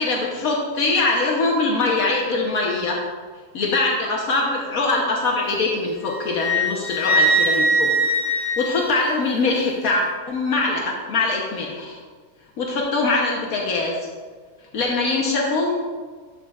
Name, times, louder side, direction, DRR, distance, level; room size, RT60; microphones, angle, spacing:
voice 1, 0.0-3.0 3.5-7.9 8.4-12.0 12.6-13.9 14.7-15.8, left 3 dB, 70° left, -1 dB, 1.3 m, -22 dB
Wind instrument woodwind instrument, 6.0-9.5, right 1 dB, 55° right, 2.0 m, -22 dB
12.5 x 5.6 x 2.4 m, 1.5 s
omnidirectional pair, 1.6 m